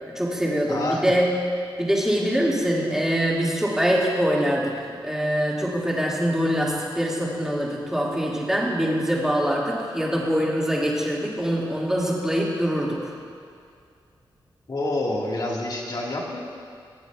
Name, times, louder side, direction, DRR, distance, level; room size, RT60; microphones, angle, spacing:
voice 1, 0.1-1.3 1.8-13.1, equal, 5° right, -4 dB, 2.1 m, -24 dB
voice 2, 0.7-1.0 14.7-16.4, left 2 dB, 50° left, -2 dB, 1.7 m, -27 dB
21.5 x 7.9 x 2.4 m, 2.3 s
cardioid pair, 70°, 9 cm